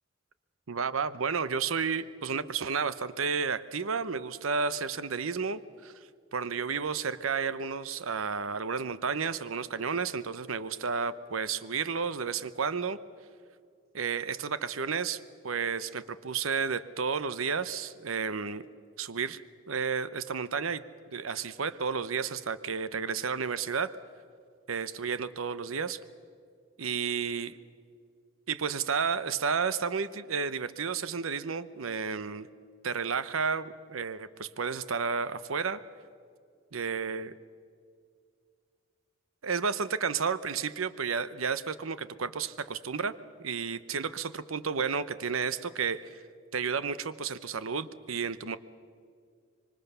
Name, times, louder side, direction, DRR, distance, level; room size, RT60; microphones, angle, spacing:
voice 1, 0.7-5.9 6.3-13.0 13.9-18.6 19.0-19.4 19.7-20.8 21.1-24.0 24.7-26.0 26.8-27.6 28.5-32.5 32.8-35.8 36.7-37.3 39.4-43.1 43.4-46.2 46.5-48.6, right 5 dB, 90° right, 15 dB, 0.8 m, -32 dB
25.5 x 24.0 x 6.9 m, 2.2 s
head